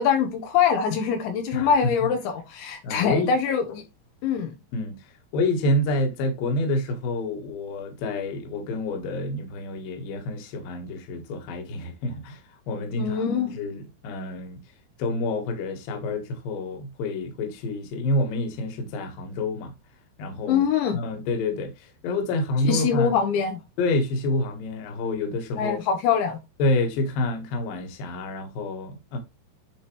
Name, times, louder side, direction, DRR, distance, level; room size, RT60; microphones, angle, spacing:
voice 1, 0.0-3.8 4.2-4.5 12.9-13.6 20.5-21.0 22.6-23.6 25.6-26.4, left 7 dB, 75° left, 3.2 m, -23 dB
voice 2, 2.8-3.3 4.7-5.0 5.3-12.4 12.7-13.3 13.5-14.6 15.0-19.7 20.2-20.7 20.9-23.2 23.8-25.8 26.6-29.2, left 2 dB, 60° left, 2.8 m, -28 dB
10.5 x 4.8 x 3.1 m
omnidirectional pair, 5.5 m